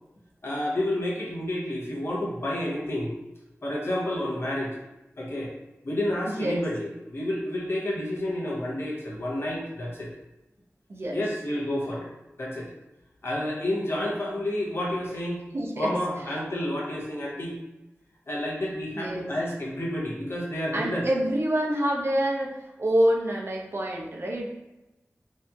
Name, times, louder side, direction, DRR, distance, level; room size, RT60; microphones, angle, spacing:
voice 1, 0.4-3.1 3.6-4.8 5.2-5.5 5.8-10.1 11.1-12.1 12.4-12.7 13.2-15.4 15.8-17.5 18.3-21.0, left 1 dB, 55° left, -4 dB, 0.7 m, -30 dB
voice 2, 6.3-6.6 10.9-11.2 15.5-16.4 18.9-19.4 20.7-24.5, right 1 dB, 60° right, -2 dB, 0.5 m, -27 dB
2.8 x 2.5 x 2.2 m, 0.97 s
wide cardioid pair, 70°, 5 cm